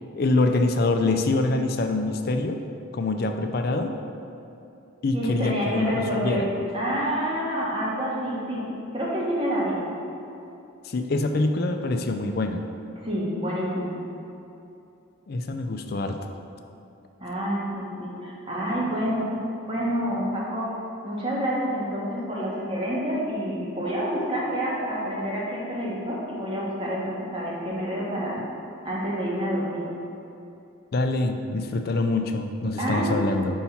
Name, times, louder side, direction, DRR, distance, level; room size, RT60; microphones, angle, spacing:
voice 1, 0.2-2.6 2.9-3.9 5.0-6.5 10.8-12.6 15.3-16.2 30.9-33.6, left 2 dB, 50° left, 6 dB, 0.4 m, -25 dB
voice 2, 5.1-8.6 8.9-9.8 13.0-14.0 17.2-19.3 19.7-20.7 21.0-28.4 28.8-29.8 32.8-33.2, equal, 25° right, -5 dB, 1.2 m, -28 dB
5.6 x 4.2 x 5.7 m, 2.8 s
head